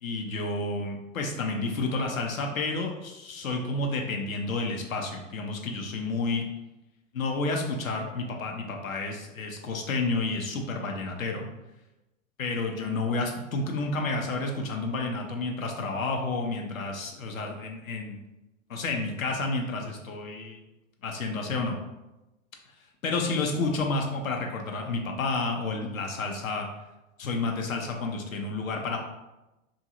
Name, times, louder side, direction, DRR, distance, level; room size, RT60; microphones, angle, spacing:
voice 1, 0.0-6.4 7.1-11.5 12.4-18.2 18.7-20.6 21.0-21.8 23.0-26.7 27.2-29.0, left 3 dB, 80° left, 2 dB, 0.6 m, -30 dB
2.9 x 2.6 x 2.4 m, 1.0 s
figure-of-eight pair, 90°, 40 cm